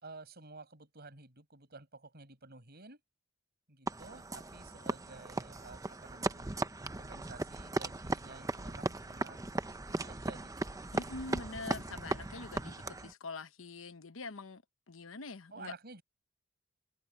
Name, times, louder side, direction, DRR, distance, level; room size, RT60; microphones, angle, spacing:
voice 1, 0.0-3.0 3.7-9.4 9.8-10.8 15.5-16.0, right 3 dB, 55° right, 6.0 m, -52 dB
sound 1, 3.9-13.1, right 2 dB, 15° right, 0.7 m, -38 dB
voice 2, 10.9-14.6 14.9-15.7, left 3 dB, 85° left, 1.0 m, -44 dB
head